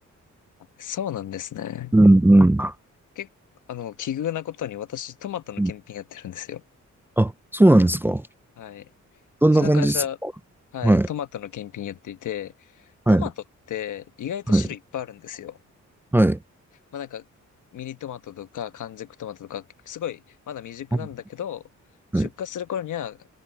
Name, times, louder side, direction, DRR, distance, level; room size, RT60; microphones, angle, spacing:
voice 1, 0.8-1.9 3.1-3.3 3.7-6.6 8.6-8.9 9.5-10.2 10.7-13.3 13.7-15.6 16.9-17.2 17.7-21.6 22.1-23.3, left 10 dB, 85° left, 1.2 m, -33 dB
voice 2, 1.9-2.7 5.6-5.7 7.2-8.2 9.4-10.0 10.8-11.1 13.1-13.3 14.5-14.6 16.1-16.4 22.1-22.3, right 1 dB, 10° right, 0.4 m, -17 dB
wide cardioid pair, 125°, 30 cm